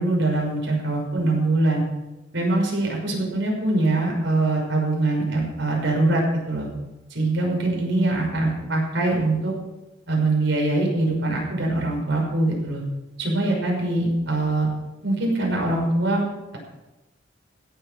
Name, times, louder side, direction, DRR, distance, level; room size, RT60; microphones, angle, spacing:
voice 1, 0.0-1.8 2.3-6.7 7.1-9.5 10.1-12.8 13.2-14.7 15.0-16.2, right 2 dB, 65° right, -1 dB, 5.8 m, -23 dB
16.5 x 8.6 x 6.5 m, 1.0 s
head